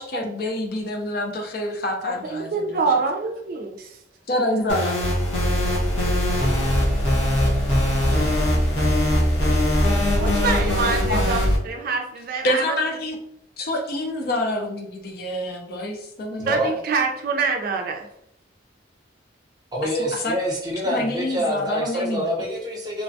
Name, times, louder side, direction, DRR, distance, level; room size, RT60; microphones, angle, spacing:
voice 1, 0.0-2.8 4.3-5.0 11.1-11.4 12.4-13.2 13.6-16.6 20.1-20.4 20.9-22.2, left 1 dB, 55° left, 3 dB, 0.5 m, -27 dB
voice 2, 2.1-4.0 10.2-12.8 16.5-18.1, right 4 dB, 50° right, 3 dB, 0.4 m, -25 dB
sound 1, 4.7-11.6, equal, 75° left, 1.0 m, -21 dB
voice 3, 19.7-23.0, equal, 20° right, -3 dB, 0.7 m, -26 dB
3.2 x 2.1 x 2.6 m, 0.75 s
head